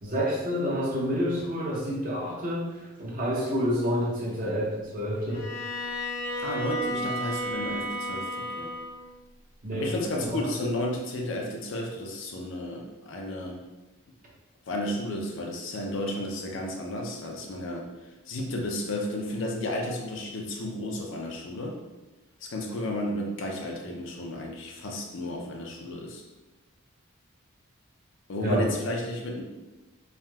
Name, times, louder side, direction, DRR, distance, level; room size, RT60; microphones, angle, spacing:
voice 1, 0.0-5.5 9.6-10.5 28.4-28.7, equal, 40° right, -3 dB, 0.6 m, -29 dB
Bowed string instrument, 5.3-9.0, equal, 75° left, 1.0 m, -32 dB
voice 2, 6.4-8.7 9.7-13.6 14.7-17.9 18.3-21.8 22.4-26.2 28.3-29.4, left 1 dB, 60° left, 1 dB, 0.5 m, -32 dB
3.3 x 2.6 x 2.3 m, 1.1 s
head